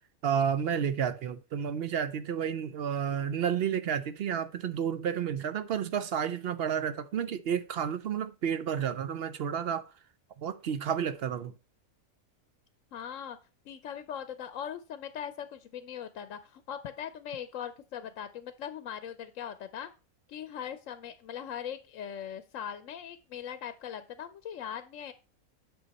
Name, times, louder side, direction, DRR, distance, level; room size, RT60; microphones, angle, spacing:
voice 1, 0.2-9.9 10.4-11.5, right 8 dB, 60° right, 0.6 m, -31 dB
voice 2, 12.9-13.4 13.7-19.9 20.3-25.1, left 9 dB, 70° left, 1.0 m, -40 dB
8.0 x 6.1 x 4.1 m
omnidirectional pair, 1.5 m